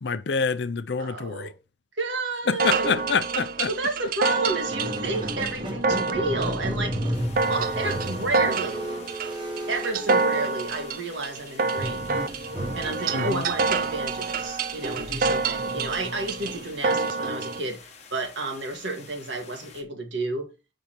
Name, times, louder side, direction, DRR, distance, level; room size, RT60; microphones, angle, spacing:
voice 1, 0.0-1.5 2.5-3.7 13.1-13.4, left 5 dB, 65° left, 0.5 m, -26 dB
voice 2, 1.0-1.5 2.0-2.9 3.7-7.0 7.5-8.9 9.7-12.1 12.8-20.5, right 2 dB, 75° right, 1.8 m, -31 dB
sound 1, 2.6-17.6, right 4 dB, 50° right, 0.5 m, -28 dB
Squeak, 4.5-10.8 11.8-16.9, right 1 dB, 25° right, 1.1 m, -34 dB
sound 2, 7.1-19.8, left 5 dB, 35° left, 1.2 m, -49 dB
6.6 x 5.5 x 4.4 m
head